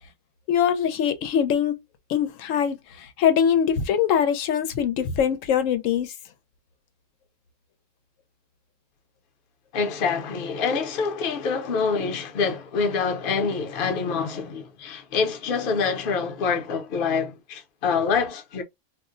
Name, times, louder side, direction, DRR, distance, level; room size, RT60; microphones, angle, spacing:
voice 1, 0.5-1.8 2.1-6.1, left 8 dB, 85° left, 0.9 m, -23 dB
voice 2, 9.7-18.6, left 5 dB, 50° left, 0.8 m, -26 dB
2.5 x 2.1 x 3.6 m
omnidirectional pair, 1.3 m